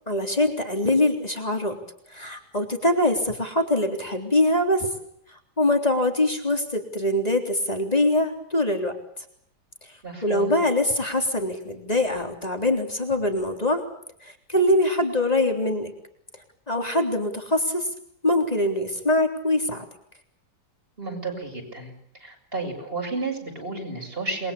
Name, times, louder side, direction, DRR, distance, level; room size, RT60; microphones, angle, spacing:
voice 1, 0.1-1.8 2.1-4.9 5.3-9.0 10.2-13.8 14.2-15.9 16.7-17.9 18.2-19.8, left 1 dB, 20° left, 4 dB, 3.8 m, -23 dB
voice 2, 10.0-10.6 21.0-21.9 22.2-24.5, right 3 dB, 30° right, 2 dB, 7.7 m, -32 dB
29.0 x 22.5 x 8.6 m, 0.69 s
omnidirectional pair, 1.8 m